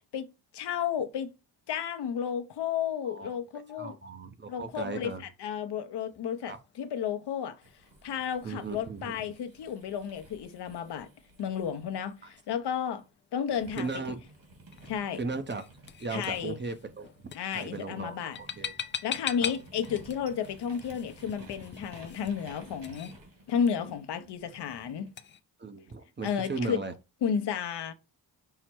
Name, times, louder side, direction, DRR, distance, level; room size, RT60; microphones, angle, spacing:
voice 1, 0.5-1.3 1.7-4.0 4.5-5.1 5.4-7.6 8.0-11.1 11.4-13.0 13.3-13.9 14.9-15.2 16.1-16.6 17.3-18.4 19.0-23.2 23.5-25.1 26.2-26.8 27.2-27.9, left 8 dB, 65° left, 0.7 m, -32 dB
voice 2, 3.0-3.4 3.8-5.2 6.5-6.6 8.4-9.2 13.8-14.2 15.2-15.6 16.0-17.1 17.5-18.7 19.4-19.5 25.6-26.9, right 4 dB, 25° right, 0.7 m, -36 dB
sound 1, 6.0-25.4, left 7 dB, 30° left, 0.4 m, -45 dB
sound 2, 7.6-13.0 13.5-25.1, right 2 dB, 50° right, 2.0 m, -54 dB
5.6 x 2.1 x 4.5 m
cardioid pair, 85°, 43 cm